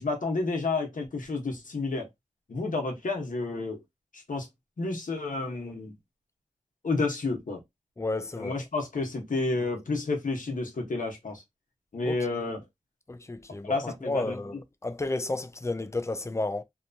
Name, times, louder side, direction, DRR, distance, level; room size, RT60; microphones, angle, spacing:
voice 1, 0.0-2.1 2.5-3.8 4.1-4.5 4.8-6.0 6.8-7.6 8.4-11.4 11.9-12.6 13.6-14.6, left 3 dB, 85° left, 0.9 m, -30 dB
voice 2, 8.0-8.5 12.0-12.2 13.1-16.6, left 2 dB, 20° left, 0.4 m, -32 dB
2.9 x 2.2 x 2.6 m
cardioid pair, 40°, 13 cm